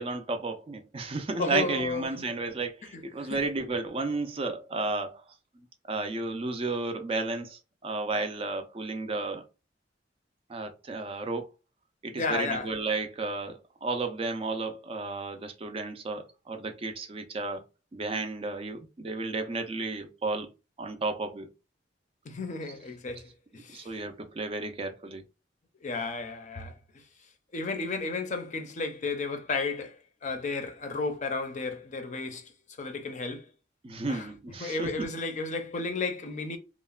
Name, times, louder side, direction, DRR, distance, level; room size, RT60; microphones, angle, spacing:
voice 1, 0.0-5.2 5.9-9.4 10.5-11.4 12.0-17.6 17.9-20.5 20.8-21.5 23.7-25.2 33.8-35.1, right 3 dB, 30° right, 0.4 m, -33 dB
voice 2, 1.4-2.3 2.9-3.4 12.2-12.7 22.2-23.9 25.8-26.7 27.5-32.5 32.8-33.5 34.1-34.3 34.6-36.6, left 3 dB, 40° left, 0.5 m, -33 dB
3.0 x 2.0 x 2.3 m
head